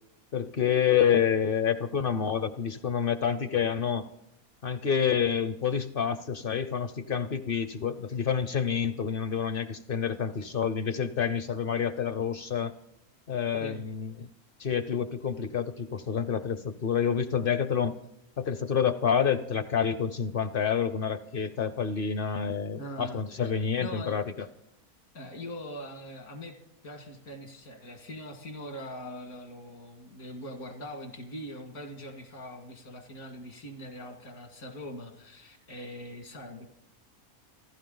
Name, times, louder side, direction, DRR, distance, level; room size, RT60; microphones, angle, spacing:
voice 1, 0.3-4.1 4.6-12.7 13.3-14.3 14.6-18.0 18.4-24.5, left 7 dB, 50° left, 13 dB, 0.7 m, -28 dB
voice 2, 22.8-23.5 23.8-24.2 25.1-26.5 26.8-36.7, equal, 80° left, 4 dB, 2.5 m, -42 dB
28.5 x 12.0 x 3.9 m, 0.79 s
omnidirectional pair, 1.5 m